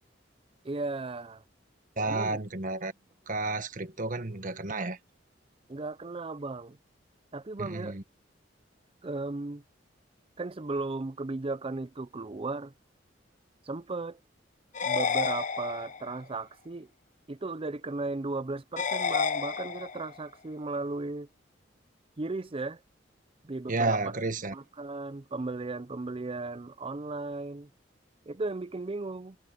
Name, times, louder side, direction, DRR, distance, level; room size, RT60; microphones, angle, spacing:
voice 1, 0.6-1.4 2.0-2.4 5.7-6.8 7.3-8.0 9.0-9.6 10.4-12.7 13.6-14.2 14.8-16.9 17.3-21.3 22.2-22.8 23.4-24.0 24.5-27.7 28.3-29.4, right 3 dB, 30° right, 0.6 m, -36 dB
voice 2, 2.0-2.9 3.3-5.0 7.6-8.0 23.7-24.5, right 3 dB, 45° right, 1.5 m, -31 dB
sound 1, 14.7-16.2 18.8-20.2, left 5 dB, 45° left, 0.8 m, -30 dB
head